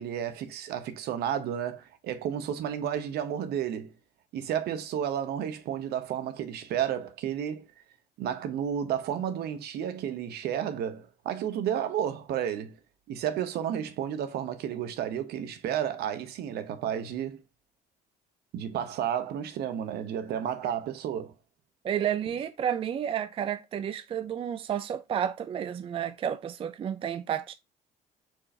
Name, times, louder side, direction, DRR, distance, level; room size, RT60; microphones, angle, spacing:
voice 1, 0.0-3.9 4.3-7.7 8.2-12.8 13.1-17.4 18.5-21.3, right 9 dB, 70° right, 0.8 m, -32 dB
voice 2, 21.8-27.5, right 9 dB, 35° right, 0.4 m, -31 dB
4.6 x 2.5 x 4.2 m
cardioid pair, 110°, 17 cm